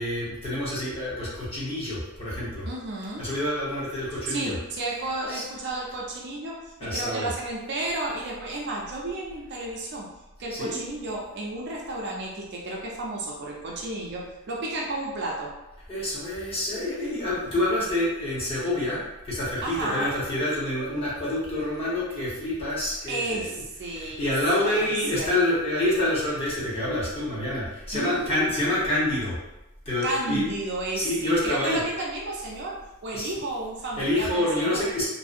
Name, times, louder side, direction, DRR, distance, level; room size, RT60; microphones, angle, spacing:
voice 1, 0.0-2.7 3.2-4.5 5.3-5.4 6.8-7.3 10.5-10.8 15.9-23.5 23.9-29.4 29.9-30.4 30.9-31.8 33.1-33.3 34.0-35.1, left 1 dB, 25° left, -8 dB, 0.7 m, -27 dB
voice 2, 2.7-3.3 4.3-10.1 10.4-15.6 19.6-20.2 23.1-24.3 24.6-25.3 27.9-28.5 30.0-34.8, right 2 dB, 50° right, -2 dB, 0.4 m, -32 dB
2.6 x 2.0 x 2.4 m, 0.96 s
head